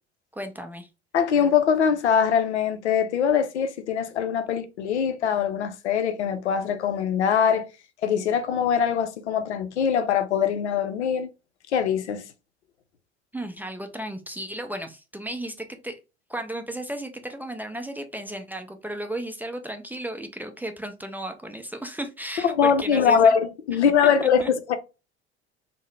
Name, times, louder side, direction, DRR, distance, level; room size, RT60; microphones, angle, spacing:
voice 1, 0.4-0.9 13.3-16.0 16.3-23.3 24.4-24.5, right 1 dB, 5° right, 0.4 m, -34 dB
voice 2, 1.1-7.7 8.0-11.3 11.7-12.2 22.4-23.4 23.7-24.7, left 7 dB, 85° left, 0.5 m, -22 dB
3.5 x 2.0 x 3.2 m
figure-of-eight pair, 65°, 33 cm